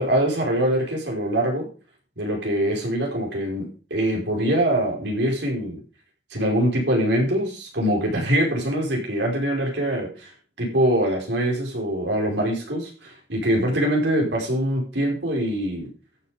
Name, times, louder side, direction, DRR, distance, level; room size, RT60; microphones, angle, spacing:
voice 1, 0.0-1.7 2.2-5.8 6.3-10.3 10.6-15.9, right 1 dB, 80° right, 0 dB, 5.2 m, -23 dB
14.0 x 7.2 x 5.2 m, 0.36 s
head